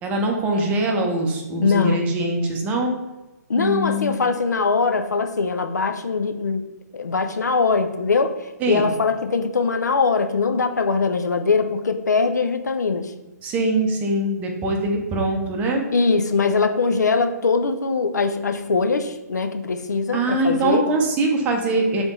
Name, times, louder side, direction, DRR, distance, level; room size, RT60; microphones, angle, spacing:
voice 1, 0.0-2.9 3.6-4.3 8.6-8.9 13.4-15.8 20.1-22.0, right 2 dB, 15° right, 2 dB, 0.6 m, -22 dB
voice 2, 1.6-2.1 3.5-6.7 6.9-8.3 8.7-13.1 15.9-20.8, left 4 dB, 70° left, 7 dB, 0.4 m, -21 dB
3.4 x 3.2 x 3.8 m, 1.0 s
figure-of-eight pair, 130°, 10 cm